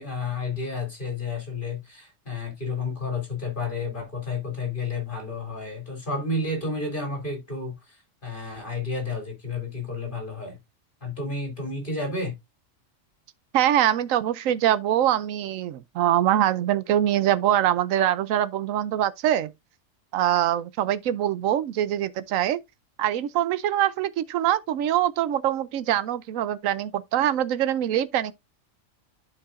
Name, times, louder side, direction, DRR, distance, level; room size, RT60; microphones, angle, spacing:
voice 1, 0.0-8.0 8.2-10.6 11.0-12.3, left 3 dB, 40° left, 3.0 m, -31 dB
voice 2, 13.5-19.5 20.1-22.6 23.0-28.3, right 11 dB, 80° right, 1.0 m, -23 dB
11.5 x 4.7 x 2.5 m
omnidirectional pair, 1.4 m